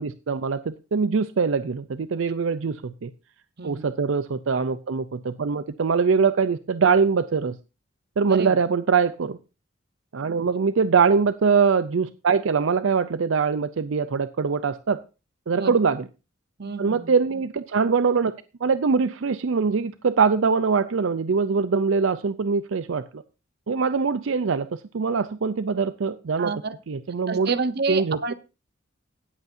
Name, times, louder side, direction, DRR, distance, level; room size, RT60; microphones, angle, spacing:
voice 1, 0.0-3.1 3.6-7.6 8.2-9.4 10.1-15.0 15.5-16.0 16.8-18.3 18.6-23.2 23.7-24.7 24.9-26.5 26.9-27.5 27.9-28.3, right 5 dB, 80° right, 13 dB, 0.5 m, -23 dB
voice 2, 3.6-3.9 8.3-8.6 10.4-10.5 15.6-15.7 16.6-17.1 26.4-26.8 27.3-28.3, right 4 dB, 55° right, 11 dB, 1.0 m, -29 dB
18.0 x 8.1 x 2.7 m, 0.30 s
head